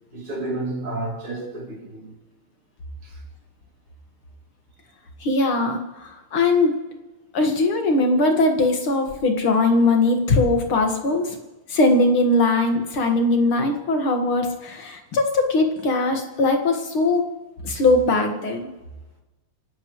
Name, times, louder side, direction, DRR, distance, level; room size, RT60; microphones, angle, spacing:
voice 1, 0.1-2.1 3.0-3.2, right 2 dB, 85° right, 3.9 m, -31 dB
voice 2, 5.2-6.8 7.3-11.4 11.7-17.3 17.6-18.7, left 2 dB, 70° left, 2.7 m, -20 dB
28.5 x 12.0 x 3.2 m
omnidirectional pair, 2.4 m